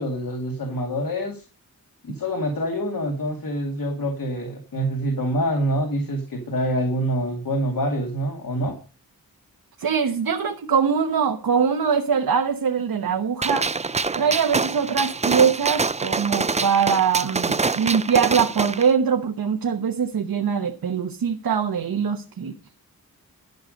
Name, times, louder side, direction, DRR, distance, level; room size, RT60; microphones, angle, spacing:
voice 1, 0.0-1.5 2.0-8.7, equal, 70° left, 3 dB, 2.3 m, -26 dB
voice 2, 9.8-13.7 14.1-22.5, right 6 dB, 75° right, 5 dB, 1.1 m, -22 dB
Gunshot gunfire, 13.4-18.9, right 4 dB, 20° right, 0.4 m, -25 dB
12.0 x 6.6 x 5.2 m, 0.36 s
wide cardioid pair, 95°, 35 cm